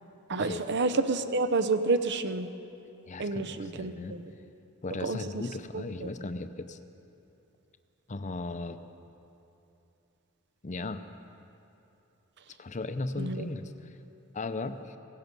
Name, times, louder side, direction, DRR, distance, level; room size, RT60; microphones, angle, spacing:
voice 1, 0.3-2.5 3.2-4.3 5.0-5.2 5.7-6.1 13.2-13.5, right 3 dB, 50° right, 11 dB, 0.7 m, -29 dB
voice 2, 3.1-4.2 4.8-6.8 8.1-8.8 10.6-11.0 12.6-13.9 14.3-15.0, left 2 dB, 35° left, 9 dB, 0.6 m, -36 dB
17.0 x 15.5 x 5.3 m, 2.8 s
head